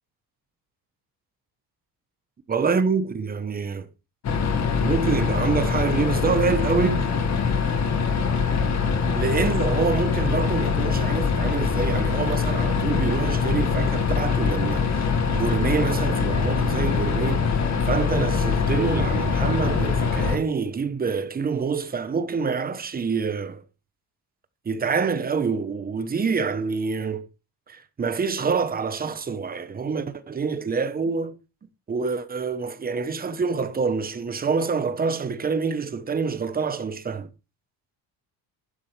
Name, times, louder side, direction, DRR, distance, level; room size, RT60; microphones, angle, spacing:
voice 1, 2.5-3.9 4.8-7.1 9.1-15.0 15.3-17.5 17.9-23.6 24.6-27.3 27.7-31.4 31.9-37.3, right 5 dB, 25° right, 1.1 m, -26 dB
sound 1, 4.2-20.4, left 5 dB, 45° left, 2.0 m, -23 dB
11.5 x 9.9 x 3.4 m
cardioid pair, 150°, 38 cm